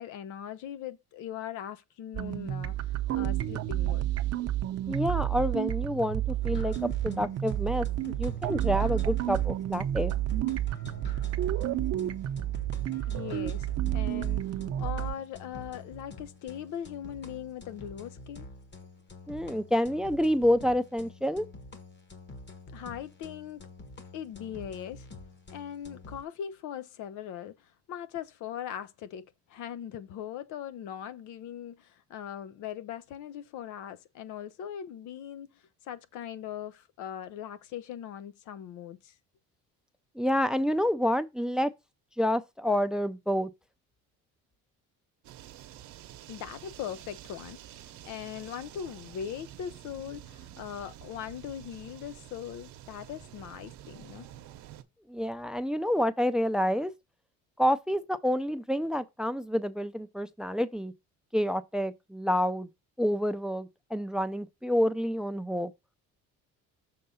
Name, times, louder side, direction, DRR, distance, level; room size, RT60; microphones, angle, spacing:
voice 1, 0.0-4.1 13.1-13.7 13.9-18.5 22.7-23.6 24.1-25.1 25.5-39.1 46.3-54.3, left 9 dB, 75° left, 0.8 m, -40 dB
sound 1, 2.1-15.1, right 13 dB, 55° right, 0.8 m, -30 dB
voice 2, 4.9-10.1 19.3-21.5 40.2-41.7 42.2-43.5 55.1-56.9 57.6-60.9 61.3-62.7 63.0-65.7, equal, ahead, 0.5 m, -28 dB
sound 2, 6.4-26.2, left 3 dB, 35° left, 1.4 m, -47 dB
sound 3, 45.2-54.8, right 12 dB, 75° right, 0.9 m, -49 dB
6.7 x 3.6 x 5.5 m
cardioid pair, 110°, 30 cm